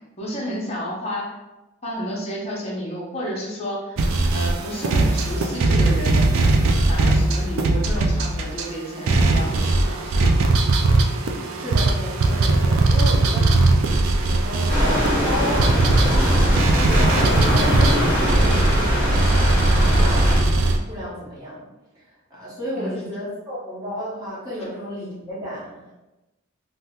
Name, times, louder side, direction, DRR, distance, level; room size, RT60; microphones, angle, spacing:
voice 1, 0.2-1.3 1.8-4.0 4.3-6.3 6.9-10.1 13.2-13.6 19.8-20.0 22.3-22.4 22.8-23.0, equal, 30° left, -4 dB, 0.7 m, -31 dB
sound 1, 4.0-8.7 9.1-20.8, right 2 dB, 75° right, 0.4 m, -19 dB
voice 2, 11.6-13.6 14.3-20.3 20.9-21.6 22.0-25.9, equal, 20° right, -9 dB, 1.1 m, -32 dB
sound 2, 14.7-20.4, equal, 40° right, 1.0 m, -20 dB
2.8 x 2.1 x 3.5 m, 1.0 s
head